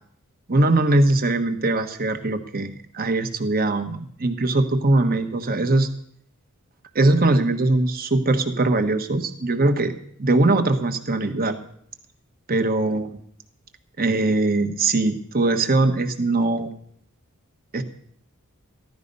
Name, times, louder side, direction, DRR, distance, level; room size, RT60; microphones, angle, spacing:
voice 1, 0.5-5.9 6.9-9.9 10.2-11.6 12.5-13.1 14.0-16.7 17.7-17.8, right 2 dB, 40° right, 7 dB, 1.3 m, -21 dB
15.5 x 12.0 x 5.4 m, 0.65 s
head